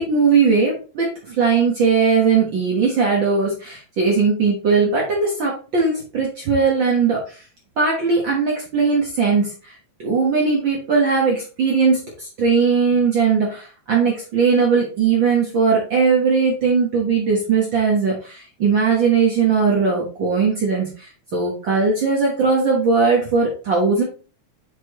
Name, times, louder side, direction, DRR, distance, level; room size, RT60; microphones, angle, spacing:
voice 1, 0.0-7.4 7.8-9.7 10.0-24.0, right 5 dB, 50° right, -2 dB, 1.7 m, -19 dB
8.1 x 4.2 x 3.1 m, 0.36 s
omnidirectional pair, 3.4 m